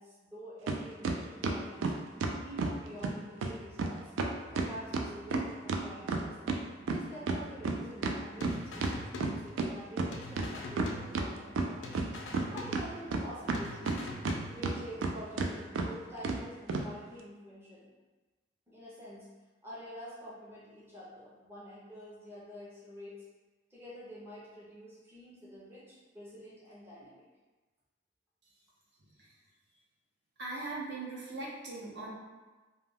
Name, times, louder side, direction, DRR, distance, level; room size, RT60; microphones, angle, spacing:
voice 1, 0.0-1.9 2.4-4.1 4.5-6.4 6.8-11.9 12.5-14.0 14.5-17.9 18.7-19.3 19.6-23.2 23.7-27.2, equal, 15° right, -8 dB, 0.5 m, -47 dB
sound 1, 0.7-0.8 1.0-2.8 3.0-3.1 3.4-3.5 3.8-3.9 4.2-6.6 6.9-9.7 10.0-10.1 10.4-11.3 11.6-12.4 12.7-14.4 14.6-15.1 15.4-15.5 15.8-15.9 16.2-16.4 16.7-16.8, right 3 dB, 90° right, 0.3 m, -31 dB
sound 2, 8.4-9.8 10.1-11.6 11.8-13.3 13.5-14.9, left 2 dB, 75° left, 0.4 m, -44 dB
voice 2, 30.4-32.1, right 2 dB, 60° right, -6 dB, 0.7 m, -39 dB
2.2 x 2.2 x 3.4 m, 1.2 s
head